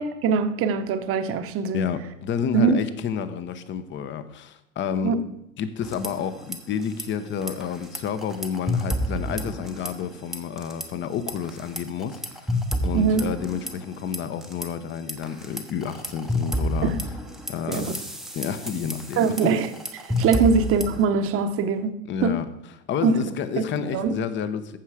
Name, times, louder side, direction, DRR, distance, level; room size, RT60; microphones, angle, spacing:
voice 1, 0.0-1.9 2.5-2.8 5.0-5.2 12.9-13.3 16.8-17.0 17.7-17.9 19.2-19.7 20.2-22.4 23.0-23.2 23.6-24.1, right 5 dB, 35° right, 9 dB, 1.0 m, -22 dB
voice 2, 1.7-5.2 5.6-12.6 12.8-16.9 17.5-18.0 18.3-19.5 20.4-20.5 22.1-22.5 22.9-24.8, left 7 dB, 30° left, 12 dB, 0.9 m, -30 dB
sound 1, 5.8-6.6 6.8-7.0 7.4-10.1 10.3-10.8 11.3-14.7 15.1-21.0, equal, ahead, 0.9 m, -30 dB
14.5 x 5.5 x 4.9 m, 0.85 s
supercardioid pair, 120°, 39 cm